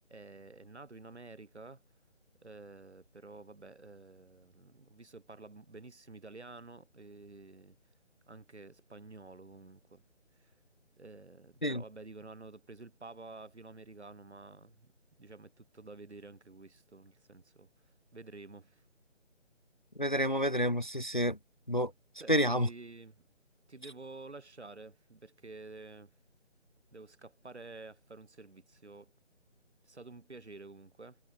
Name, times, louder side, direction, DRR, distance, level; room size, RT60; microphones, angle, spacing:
voice 1, 0.1-1.8 2.4-7.7 8.3-10.0 10.4-10.5 11.0-14.9 15.2-17.7 18.1-18.8 22.2-23.2 23.7-26.1 26.9-29.1 29.8-31.2, right 3 dB, 65° right, 6.3 m, -50 dB
voice 2, 20.0-21.4 21.7-21.9 22.3-22.7, equal, 45° left, 0.4 m, -29 dB
figure-of-eight pair, 180°, 36 cm